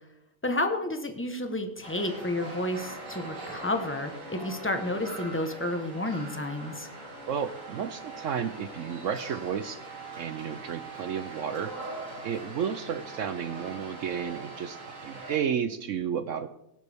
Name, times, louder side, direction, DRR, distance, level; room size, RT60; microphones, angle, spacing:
voice 1, 0.4-6.9, left 1 dB, 10° left, 6 dB, 0.7 m, -31 dB
sound 1, 1.8-15.4, right 2 dB, 45° right, 2.6 m, -42 dB
voice 2, 7.3-9.8 10.2-11.7 12.2-16.5, right 8 dB, 70° right, 11 dB, 0.7 m, -32 dB
17.5 x 11.0 x 3.5 m, 0.83 s
omnidirectional pair, 1.9 m